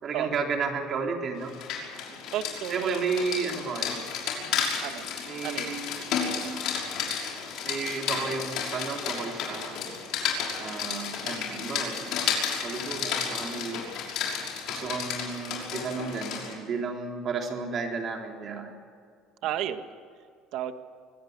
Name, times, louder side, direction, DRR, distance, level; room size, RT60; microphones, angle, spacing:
voice 1, 0.0-1.6 2.1-2.2 2.7-4.0 5.3-5.9 7.6-9.8 10.6-12.1 12.6-13.8 14.7-18.7, right 5 dB, 40° right, 2 dB, 3.8 m, -32 dB
Rain, 1.4-16.5, left 7 dB, 60° left, 5.9 m, -32 dB
voice 2, 2.3-3.0 4.8-5.1 5.4-5.7 19.4-19.8 20.5-20.7, right 11 dB, 65° right, 9 dB, 1.7 m, -32 dB
24.0 x 17.0 x 8.2 m, 2.1 s
cardioid pair, 125°, 0 cm